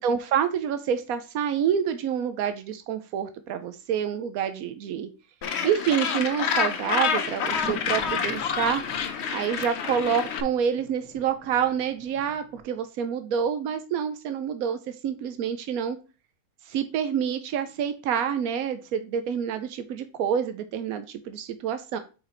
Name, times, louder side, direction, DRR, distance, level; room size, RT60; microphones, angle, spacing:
voice 1, 0.0-5.1 5.6-8.8 9.3-16.0 16.7-22.0, right 8 dB, 90° right, 10 dB, 1.1 m, -27 dB
Gull seagull, 5.4-10.4, left 6 dB, 60° left, 0.9 m, -28 dB
sound 1, 7.2-12.6, equal, ahead, 1.4 m, -45 dB
5.0 x 4.8 x 4.4 m, 0.33 s
omnidirectional pair, 1.5 m